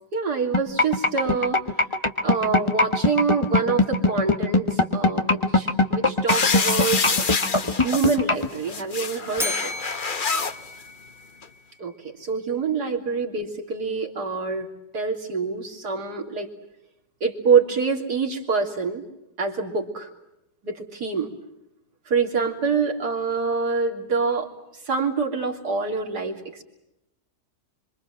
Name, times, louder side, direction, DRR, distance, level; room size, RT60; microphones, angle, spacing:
voice 1, 0.1-1.6 2.2-7.0 7.6-9.7 11.8-14.7 14.9-16.5 17.2-19.0 19.4-20.1 20.6-21.3 22.1-24.5 24.9-26.4, right 5 dB, 75° right, 2 dB, 3.8 m, -25 dB
sound 1, 0.5-8.5, left 2 dB, 20° left, 1.4 m, -20 dB
sound 2, 6.3-8.2 8.6-10.5 11.4-11.5, left 5 dB, 35° left, 1.1 m, -26 dB
Bell, 9.4-11.6, left 2 dB, ahead, 1.2 m, -33 dB
26.5 x 26.0 x 7.7 m, 0.87 s
omnidirectional pair, 1.7 m